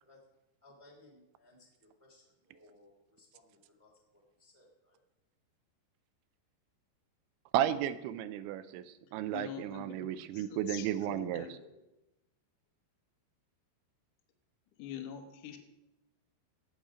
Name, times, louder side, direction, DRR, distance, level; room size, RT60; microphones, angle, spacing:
voice 1, 0.6-5.0, left 2 dB, 5° right, -2 dB, 1.7 m, -62 dB
voice 2, 7.5-11.5, right 11 dB, 85° right, 12 dB, 2.9 m, -34 dB
voice 3, 9.3-11.7 14.8-15.6, left 8 dB, 70° left, 4 dB, 2.0 m, -45 dB
17.5 x 7.0 x 5.0 m, 0.97 s
omnidirectional pair, 5.4 m